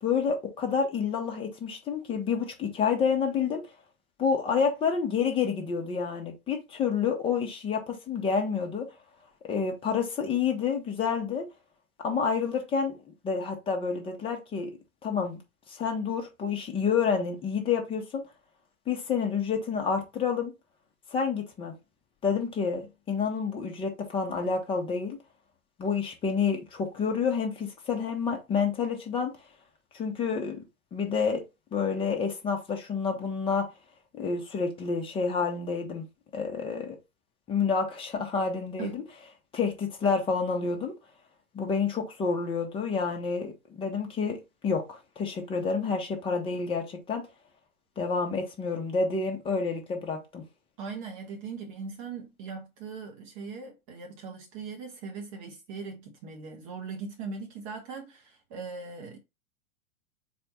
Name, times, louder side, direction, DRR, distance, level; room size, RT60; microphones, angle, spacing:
voice 1, 0.0-3.6 4.2-8.9 9.5-11.5 12.0-14.7 15.0-15.4 15.7-18.2 18.9-20.5 21.1-21.7 22.2-25.2 25.8-29.3 29.9-30.6 30.9-31.4 31.7-33.7 34.1-36.0 36.3-37.0 37.5-39.0 39.5-40.9 41.5-44.4 44.6-47.3 48.0-50.4, left 5 dB, 15° left, 0.8 m, -29 dB
voice 2, 50.8-59.2, right 4 dB, 25° right, 0.6 m, -40 dB
4.3 x 2.3 x 4.0 m
figure-of-eight pair, 105°, 42 cm